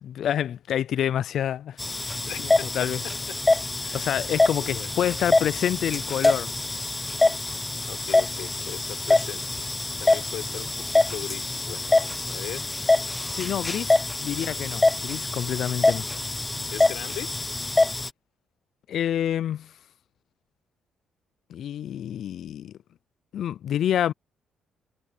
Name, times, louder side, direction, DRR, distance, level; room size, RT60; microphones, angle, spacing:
voice 1, 0.0-1.8 2.0-3.0 3.9-6.5 13.3-13.9 14.2-16.1 18.9-19.7 21.5-22.7 23.3-24.1, left 10 dB, 70° left, 0.4 m, -28 dB
sound 1, 1.8-18.1, left 2 dB, 15° left, 1.1 m, -25 dB
voice 2, 2.2-3.1 3.8-4.2 4.6-4.9 7.8-9.7 10.0-13.4 16.1-17.3, left 14 dB, 90° left, 4.6 m, -40 dB
cardioid pair, 90°, 0 cm